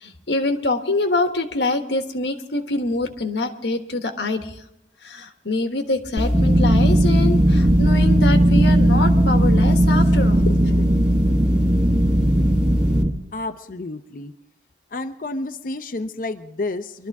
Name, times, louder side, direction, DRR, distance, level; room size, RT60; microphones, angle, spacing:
voice 1, 0.0-4.6 5.0-10.9, left 2 dB, 75° left, 7 dB, 1.3 m, -25 dB
sound 1, 6.2-13.0, equal, 5° right, 1.5 m, -21 dB
sound 2, 6.3-13.1, right 1 dB, 30° right, 0.8 m, -18 dB
voice 2, 13.3-14.3 14.9-17.1, left 2 dB, 50° left, 8 dB, 0.6 m, -30 dB
23.0 x 12.5 x 3.6 m, 0.81 s
head